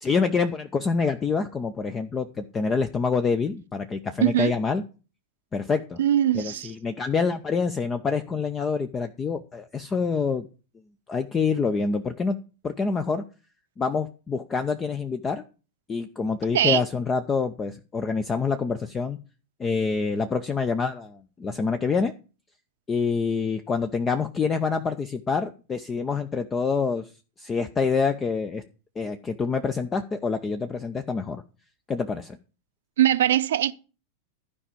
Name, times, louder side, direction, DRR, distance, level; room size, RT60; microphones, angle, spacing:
voice 1, 0.0-4.8 5.5-6.0 6.3-10.5 11.1-12.4 12.6-13.2 13.8-15.4 15.9-19.2 19.6-22.1 22.9-27.1 27.4-28.6 29.0-31.4 31.9-32.4, left 5 dB, 20° left, 0.7 m, -26 dB
voice 2, 4.2-4.5 6.0-6.7 16.5-16.8 33.0-33.7, right 12 dB, 60° right, 0.7 m, -21 dB
12.5 x 5.1 x 7.0 m
figure-of-eight pair, 90°, 0 cm